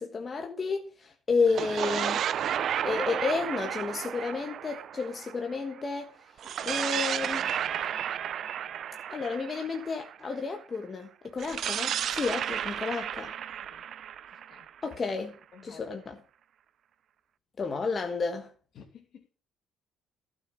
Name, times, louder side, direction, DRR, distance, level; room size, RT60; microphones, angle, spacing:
voice 1, 0.0-2.2 2.8-6.1 6.6-7.4 9.1-13.3 14.8-15.3 15.6-16.2 17.6-18.5, left 4 dB, 35° left, 1.5 m, -31 dB
sound 1, 1.4-5.8 6.4-10.3 11.4-15.2, right 9 dB, 60° right, 0.6 m, -33 dB
voice 2, 6.9-7.8 13.6-13.8 14.3-14.7 15.5-16.0 18.7-19.3, left 6 dB, 60° left, 2.7 m, -52 dB
11.5 x 6.6 x 6.2 m
supercardioid pair, 70°, 0 cm